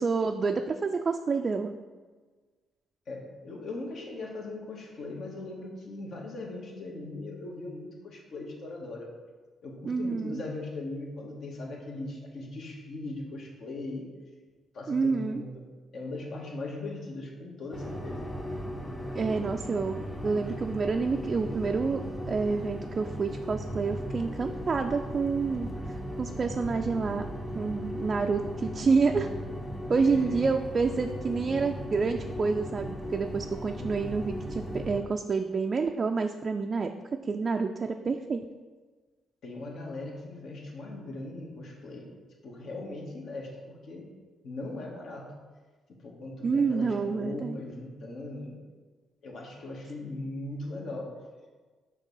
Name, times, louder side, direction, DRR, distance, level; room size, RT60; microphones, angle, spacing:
voice 1, 0.0-1.7 9.8-10.4 14.9-15.4 19.1-27.2 27.5-29.3 29.9-36.9 37.3-38.4 46.4-47.6, right 4 dB, 40° right, 4 dB, 0.3 m, -28 dB
voice 2, 3.1-9.1 9.6-14.1 14.7-15.7 15.9-18.3 30.1-30.4 39.4-42.1 42.4-44.1 44.4-45.3 46.0-48.6 49.2-51.1, left 2 dB, 65° left, -1 dB, 1.5 m, -39 dB
sound 1, 17.7-35.0, equal, 15° left, 1.3 m, -37 dB
6.4 x 3.7 x 5.5 m, 1.4 s
cardioid pair, 90°, 0 cm